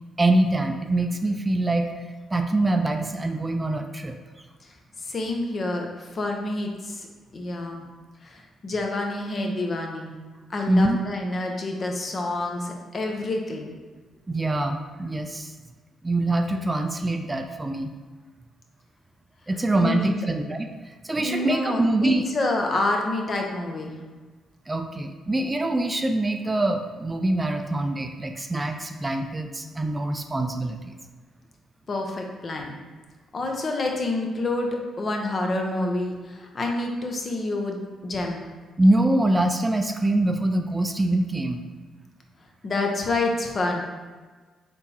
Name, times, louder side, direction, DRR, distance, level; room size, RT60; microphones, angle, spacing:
voice 1, 0.2-1.9 2.3-4.2 10.7-11.0 14.3-15.5 16.0-17.9 19.5-20.7 21.0-22.3 24.7-30.9 38.8-41.6, right 1 dB, 20° right, 5 dB, 0.4 m, -24 dB
voice 2, 4.6-7.1 7.3-7.8 8.2-10.1 10.5-13.7 19.8-20.3 21.2-23.9 31.9-32.8 33.3-34.7 35.0-37.8 38.0-38.4 42.6-43.8, left 2 dB, 45° left, 2 dB, 0.7 m, -28 dB
3.5 x 2.9 x 4.2 m, 1.4 s
supercardioid pair, 55°, 0 cm